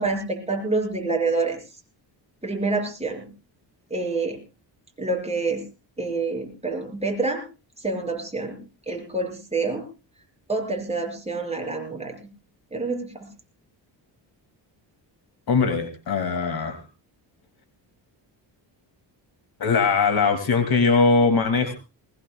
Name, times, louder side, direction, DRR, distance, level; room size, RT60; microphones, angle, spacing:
voice 1, 0.0-1.6 2.4-3.3 3.9-4.4 5.0-5.6 6.0-7.5 7.8-8.6 8.9-9.8 10.5-12.2 12.7-13.3, right 3 dB, 15° right, 2 dB, 5.8 m, -27 dB
voice 2, 15.5-16.8 19.6-21.7, left 4 dB, 55° left, 8 dB, 2.4 m, -21 dB
20.5 x 20.5 x 2.3 m, 0.30 s
cardioid pair, 95°, 45 cm